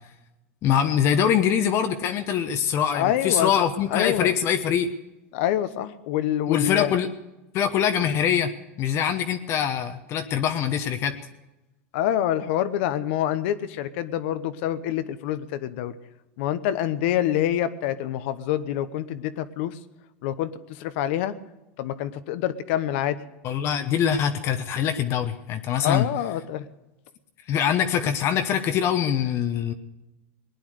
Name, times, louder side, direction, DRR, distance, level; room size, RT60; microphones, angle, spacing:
voice 1, 0.6-4.9 6.5-7.1 7.5-8.5 8.8-11.2 23.4-26.1 27.5-29.7, left 8 dB, 40° left, 7 dB, 1.0 m, -23 dB
voice 2, 2.9-4.3 5.3-7.0 11.9-15.9 16.4-19.7 20.2-20.5 20.8-21.3 21.8-23.2 25.8-26.6, left 11 dB, 65° left, 12 dB, 1.0 m, -26 dB
19.5 x 9.9 x 6.5 m, 1.0 s
supercardioid pair, 125°, 7 cm